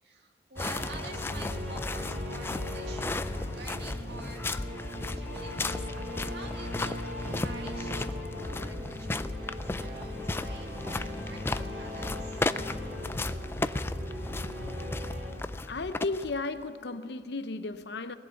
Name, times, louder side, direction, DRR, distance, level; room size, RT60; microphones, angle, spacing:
voice 1, 0.0-4.5 5.1-5.9 6.2-8.1 8.4-12.4, right 3 dB, 65° right, 2.1 m, -49 dB
sound 1, 0.6-16.6, left 2 dB, 15° left, 0.3 m, -35 dB
sound 2, 0.6-15.3, left 1 dB, 85° right, 4.7 m, -39 dB
voice 2, 15.7-18.2, left 3 dB, 65° left, 0.7 m, -34 dB
20.5 x 7.7 x 9.0 m
head